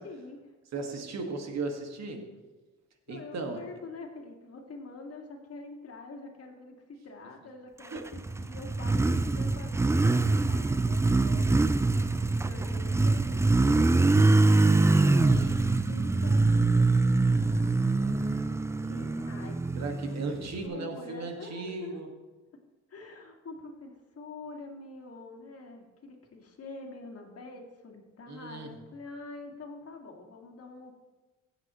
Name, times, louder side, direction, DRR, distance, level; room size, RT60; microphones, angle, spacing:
voice 1, 0.0-0.5 3.1-8.0 8.4-14.3 14.8-16.9 17.3-18.5 18.8-20.3 20.6-22.0 22.9-31.0, left 3 dB, 50° left, 1 dB, 2.1 m, -46 dB
voice 2, 0.7-2.3 3.1-3.6 7.9-8.1 15.2-15.6 19.8-22.1 28.3-28.8, right 3 dB, 60° right, 3 dB, 1.9 m, -36 dB
Motorcycle, 8.0-20.6, right 3 dB, 10° right, 0.4 m, -24 dB
16.5 x 7.7 x 3.1 m, 1.2 s
cardioid pair, 90°, 30 cm